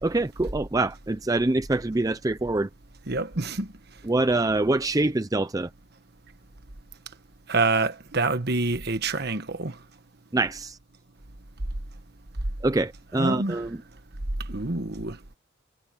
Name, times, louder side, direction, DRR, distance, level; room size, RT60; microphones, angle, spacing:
voice 1, 0.0-2.7 4.0-5.7 10.3-10.8 12.6-13.8, right 2 dB, 15° right, 0.5 m, -25 dB
voice 2, 3.1-3.7 7.5-9.8 13.2-13.6 14.5-15.2, right 3 dB, 50° right, 1.4 m, -26 dB
head